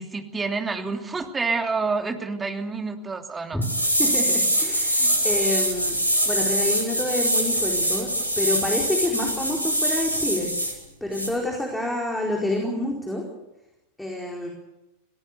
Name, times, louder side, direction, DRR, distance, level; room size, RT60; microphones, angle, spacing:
voice 1, 0.0-3.6, right 4 dB, 15° right, 4 dB, 3.0 m, -28 dB
sound 1, 3.6-10.7 11.1-11.3, equal, 85° left, 5.5 m, -23 dB
voice 2, 4.0-6.0 6.3-8.1 8.4-10.5 11.0-13.2 14.0-14.5, left 1 dB, 5° left, -1 dB, 4.4 m, -28 dB
26.5 x 18.0 x 8.2 m, 0.95 s
figure-of-eight pair, 90°, 0 cm